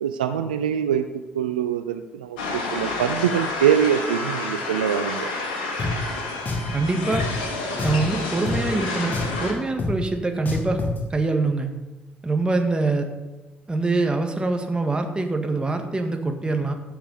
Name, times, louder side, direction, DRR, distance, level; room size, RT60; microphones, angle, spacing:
voice 1, 0.0-5.3, right 9 dB, 80° right, 9 dB, 0.4 m, -24 dB
sound 1, 2.4-9.5, left 3 dB, 75° left, 1.7 m, -29 dB
Drum, 5.8-5.9 6.5-6.7 7.1-7.3 7.8-8.1 8.5-8.6 9.1-9.4 9.8-9.9 10.5-11.0, left 3 dB, 40° left, 2.4 m, -27 dB
voice 2, 6.7-7.2 7.8-10.8 11.1-11.7 12.2-13.1 13.7-16.7, right 3 dB, 20° right, 4 dB, 1.9 m, -24 dB
15.5 x 6.8 x 4.2 m, 1.1 s
figure-of-eight pair, 45°, 5 cm